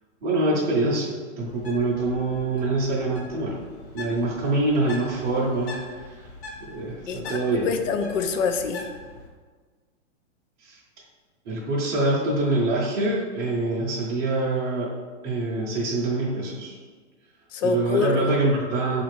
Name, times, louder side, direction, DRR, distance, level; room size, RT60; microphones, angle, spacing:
voice 1, 0.2-3.6 3.9-5.8 6.1-6.2 6.6-7.7 10.6-10.8 11.5-14.9 15.2-16.8 17.6-19.0, right 2 dB, 25° right, -6 dB, 0.5 m, -25 dB
Bird, 1.5-9.3, left 2 dB, 55° left, 1.0 m, -42 dB
voice 2, 7.1-8.9 17.5-18.3, left 5 dB, 90° left, 7 dB, 0.5 m, -26 dB
4.0 x 2.5 x 3.1 m, 1.5 s
hypercardioid pair, 140°, 37 cm